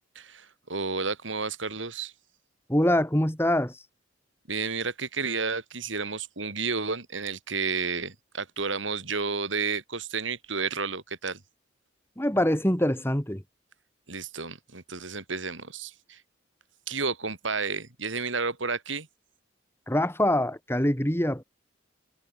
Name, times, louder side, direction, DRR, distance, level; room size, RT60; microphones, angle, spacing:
voice 1, 0.2-2.1 4.5-11.4 14.1-16.2 16.9-19.1, right 4 dB, 75° right, 4.1 m, -31 dB
voice 2, 2.7-3.7 12.2-13.4 19.9-21.4, left 1 dB, 10° left, 3.5 m, -24 dB
head